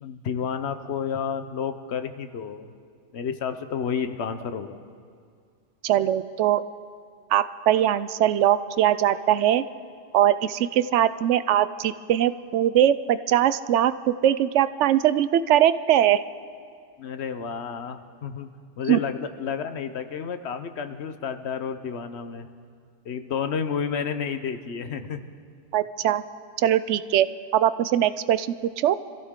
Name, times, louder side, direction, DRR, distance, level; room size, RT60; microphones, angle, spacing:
voice 1, 0.0-2.7 3.1-4.8 17.0-18.5 18.8-22.5 23.0-25.3, left 7 dB, 65° left, 9 dB, 1.0 m, -31 dB
voice 2, 5.8-6.6 7.3-9.6 10.1-16.2 18.9-19.0 25.7-26.2 26.6-27.3 27.5-28.5 28.8-29.0, right 11 dB, 80° right, 14 dB, 0.9 m, -21 dB
25.5 x 15.0 x 3.7 m, 2.2 s
omnidirectional pair, 1.2 m